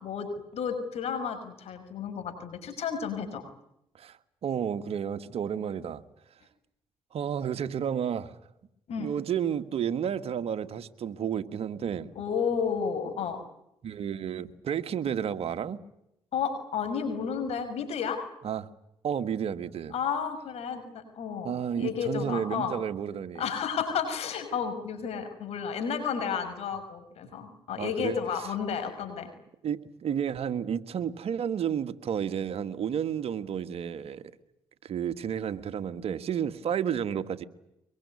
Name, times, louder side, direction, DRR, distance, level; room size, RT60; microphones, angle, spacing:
voice 1, 0.0-3.5 8.9-9.1 12.2-13.4 16.3-18.2 19.9-22.7 23.4-29.3, left 7 dB, 75° left, 5.7 m, -32 dB
voice 2, 3.9-6.0 7.1-8.4 9.0-12.1 13.8-15.8 18.4-18.7 19.0-19.9 21.4-23.4 27.2-27.3 27.8-28.2 29.6-34.3 34.8-37.4, right 8 dB, 70° right, 1.7 m, -31 dB
24.0 x 22.5 x 9.7 m
supercardioid pair, 50°, 11 cm